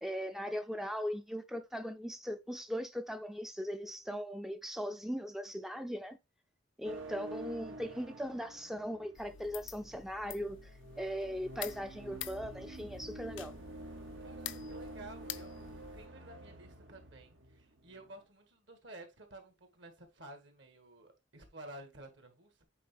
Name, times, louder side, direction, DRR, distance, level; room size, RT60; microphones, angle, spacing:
voice 1, 0.0-6.2 6.8-10.7 11.0-13.5, equal, ahead, 0.4 m, -39 dB
sound 1, 6.8-18.2, right 1 dB, 80° right, 1.3 m, -49 dB
sound 2, 9.2-16.1, left 11 dB, 70° left, 0.5 m, -48 dB
voice 2, 14.2-22.6, right 1 dB, 65° right, 2.0 m, -53 dB
8.5 x 4.1 x 3.4 m
head